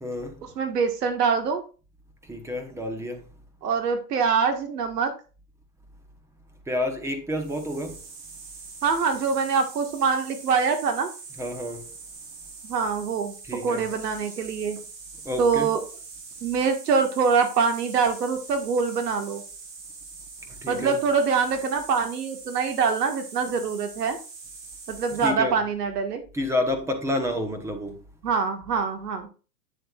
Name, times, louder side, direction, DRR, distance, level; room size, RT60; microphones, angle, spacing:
voice 1, 0.0-0.4 2.2-3.3 6.7-8.0 11.4-11.9 13.4-13.9 15.2-15.8 20.4-21.0 25.2-25.6 26.3-28.0, left 1 dB, 5° right, 1.0 m, -30 dB
voice 2, 0.6-1.6 3.6-5.1 8.8-11.1 12.6-13.3 13.6-14.8 15.4-15.8 16.4-19.4 20.7-24.2 24.9-26.2 28.2-29.3, right 5 dB, 70° right, 1.8 m, -24 dB
sound 1, 7.3-25.3, right 4 dB, 45° right, 3.7 m, -43 dB
9.0 x 7.6 x 2.5 m
hypercardioid pair, 130°, 48 cm